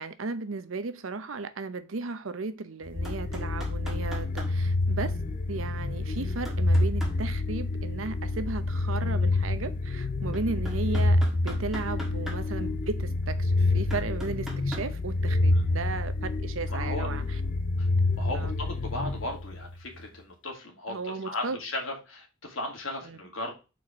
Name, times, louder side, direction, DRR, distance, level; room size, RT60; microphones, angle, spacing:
voice 1, 0.0-5.2 5.5-16.1 16.4-17.2 18.3-18.5 20.9-21.6 23.0-23.2, right 4 dB, 85° right, 0.7 m, -35 dB
sound 1, 2.9-19.8, left 2 dB, 40° left, 0.5 m, -28 dB
sound 2, 3.0-4.5 6.5-7.1 10.3-12.4 13.2-13.3 13.9-14.9 18.1-18.2, equal, ahead, 1.5 m, -40 dB
voice 2, 16.7-17.1 17.8-17.9 18.2-23.5, left 1 dB, 80° left, 2.4 m, -36 dB
4.7 x 4.3 x 5.9 m
head